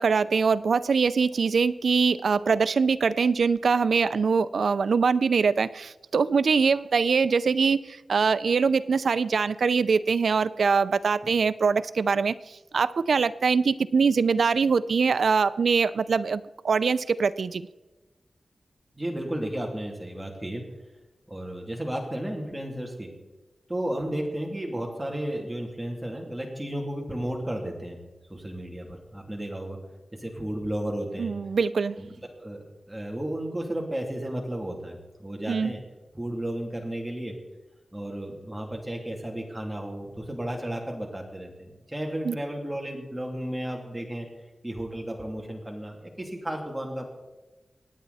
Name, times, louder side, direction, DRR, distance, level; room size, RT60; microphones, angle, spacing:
voice 1, 0.0-7.8 8.1-12.3 12.7-17.7 31.2-32.0 35.5-35.7 42.3-42.4, right 5 dB, 75° right, 15 dB, 0.5 m, -23 dB
voice 2, 18.9-20.6 21.3-23.1 23.7-28.0 28.3-29.8 30.2-31.3 31.8-35.8 36.1-37.3 37.9-44.3 44.6-47.1, right 1 dB, 10° right, 0 dB, 2.8 m, -33 dB
26.5 x 9.2 x 4.2 m, 1.1 s
wide cardioid pair, 115°, 0 cm